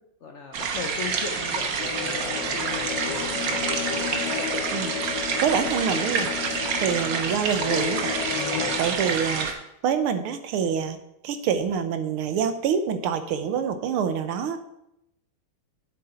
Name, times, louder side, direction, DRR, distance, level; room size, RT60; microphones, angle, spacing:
voice 1, 0.2-3.8 8.8-9.4, left 6 dB, 90° left, 3 dB, 0.6 m, -39 dB
sound 1, 0.5-9.5, right 5 dB, 65° right, 1.7 m, -28 dB
sound 2, 1.8-8.8, left 10 dB, 70° left, 1.2 m, -32 dB
voice 2, 4.7-6.3 6.8-8.1 8.8-9.5 9.8-11.0 11.2-14.6, right 7 dB, 80° right, 9 dB, 1.8 m, -26 dB
9.6 x 7.7 x 4.3 m, 0.83 s
omnidirectional pair, 2.3 m